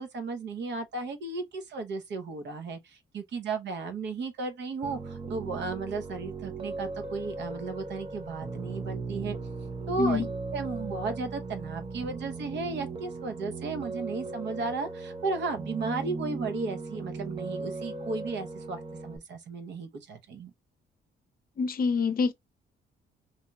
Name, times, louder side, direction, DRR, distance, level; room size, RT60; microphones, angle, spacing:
voice 1, 0.0-9.4 9.9-20.5, right 4 dB, 65° right, 0.8 m, -35 dB
Piano, 4.8-19.2, right 3 dB, 25° right, 0.6 m, -37 dB
voice 2, 21.6-22.3, left 5 dB, 45° left, 0.6 m, -26 dB
2.9 x 2.7 x 2.2 m
cardioid pair, 90°, 20 cm